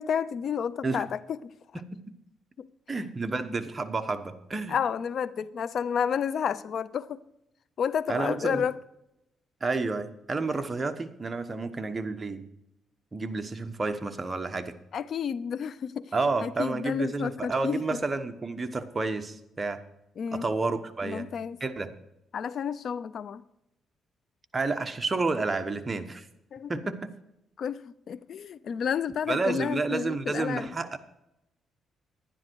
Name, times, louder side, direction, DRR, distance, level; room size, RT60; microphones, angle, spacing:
voice 1, 0.0-1.5 2.6-2.7 4.7-7.2 7.8-8.7 14.9-16.1 16.4-18.0 20.2-20.5 21.0-21.6 22.3-23.4 26.5-26.7 27.6-30.7, left 7 dB, 60° left, 0.4 m, -31 dB
voice 2, 2.9-4.7 8.1-8.6 9.6-12.4 13.1-14.7 16.1-19.8 20.3-21.3 21.6-21.9 24.5-26.3 26.7-27.1 29.3-31.0, right 3 dB, 25° right, 1.1 m, -30 dB
11.0 x 10.5 x 4.6 m
cardioid pair, 90°, 0 cm